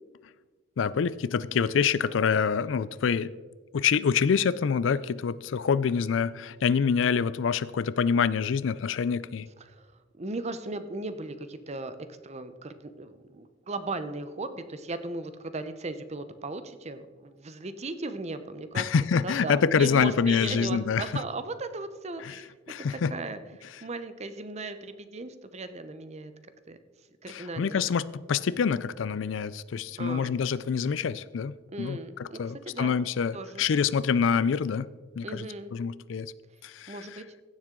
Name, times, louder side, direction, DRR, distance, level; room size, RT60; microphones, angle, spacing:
voice 1, 0.8-3.4 3.7-9.5 18.8-21.0 22.2-22.4 22.7-23.1 27.3-34.9 35.2-35.5 35.7-36.3 36.6-36.9, left 6 dB, 80° left, 18 dB, 0.4 m, -26 dB
voice 2, 10.1-12.0 12.2-18.9 19.2-22.5 22.8-26.3 26.7-26.8 27.2-27.9 30.0-30.4 31.7-33.0 33.3-33.7 35.2-35.7 36.9-37.2, right 2 dB, 35° right, 11 dB, 0.7 m, -37 dB
15.5 x 7.4 x 3.8 m, 1.4 s
head